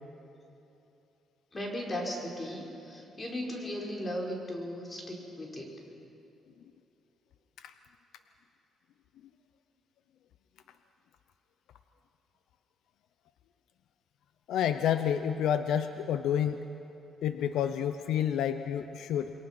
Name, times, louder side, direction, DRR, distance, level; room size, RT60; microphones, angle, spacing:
voice 1, 1.5-5.7, equal, 25° left, -1 dB, 5.1 m, -37 dB
voice 2, 14.5-16.6 17.2-19.3, left 9 dB, 80° left, 9 dB, 0.8 m, -29 dB
28.5 x 22.5 x 6.1 m, 2.9 s
cardioid pair, 90°, 0 cm